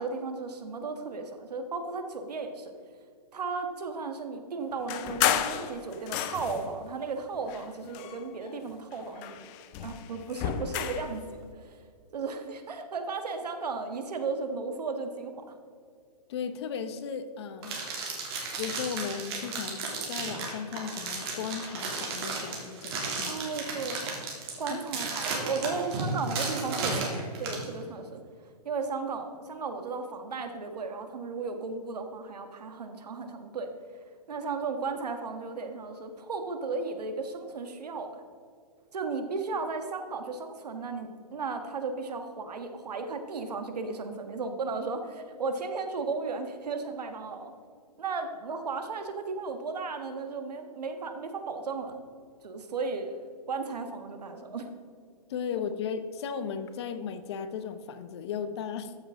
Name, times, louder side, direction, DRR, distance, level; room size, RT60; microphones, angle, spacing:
voice 1, 0.0-2.7 3.3-9.5 9.8-11.8 12.1-15.4 23.2-24.0 24.6-28.2 28.6-33.7 34.3-38.2 38.9-47.5 48.0-52.0 52.4-54.7, right 4 dB, 75° right, 6 dB, 1.6 m, -35 dB
sound 1, 4.9-6.7 7.4-8.6 8.9-11.1, left 10 dB, 20° left, 0.5 m, -32 dB
voice 2, 16.3-17.9 18.6-23.4 24.7-24.8 55.3-58.9, left 7 dB, 40° left, 10 dB, 0.8 m, -36 dB
sound 2, 17.6-27.7, right 4 dB, 40° right, 2.9 m, -34 dB
14.0 x 7.1 x 3.7 m, 2.2 s
hypercardioid pair, 150°, 21 cm